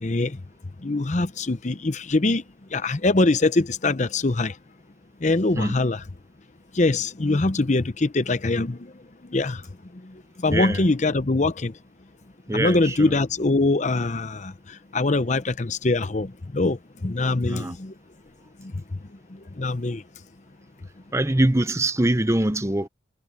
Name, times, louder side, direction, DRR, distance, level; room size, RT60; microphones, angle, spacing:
voice 1, 0.0-0.4 0.8-2.4 2.7-4.5 5.2-6.0 6.7-8.9 9.3-9.6 10.0-11.7 12.5-17.9 18.6-18.8 19.3-20.0, left 2 dB, 40° left, 0.7 m, -23 dB
voice 2, 10.5-10.9 12.5-13.1 17.4-17.8 21.1-22.9, right 1 dB, 15° right, 0.7 m, -23 dB
head